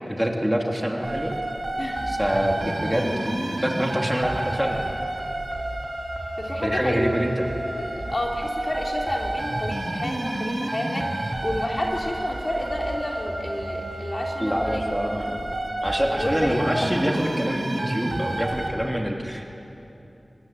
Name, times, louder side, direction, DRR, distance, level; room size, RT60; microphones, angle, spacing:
voice 1, 0.1-1.4 2.1-4.9 6.6-7.4 14.4-15.5 15.8-19.5, equal, 10° right, 1 dB, 3.1 m, -26 dB
sound 1, 1.0-18.7, right 1 dB, 60° right, 3.8 m, -30 dB
voice 2, 1.8-2.4 6.4-7.1 7.8-14.8 16.2-17.0, left 1 dB, 50° left, 0 dB, 3.6 m, -30 dB
25.0 x 19.0 x 9.4 m, 2.9 s
wide cardioid pair, 45°, 0 cm